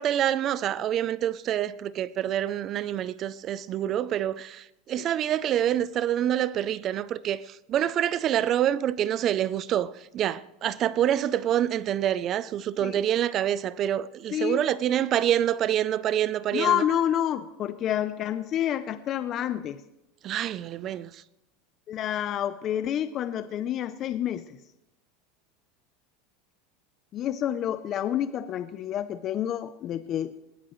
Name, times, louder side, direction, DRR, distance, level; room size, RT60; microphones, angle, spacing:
voice 1, 0.0-16.8 20.2-21.2, right 11 dB, 30° right, 0.4 m, -26 dB
voice 2, 14.3-14.7 16.5-19.8 21.9-24.6 27.1-30.3, left 10 dB, 30° left, 0.5 m, -28 dB
20.0 x 15.0 x 3.1 m
supercardioid pair, 160°, 0 cm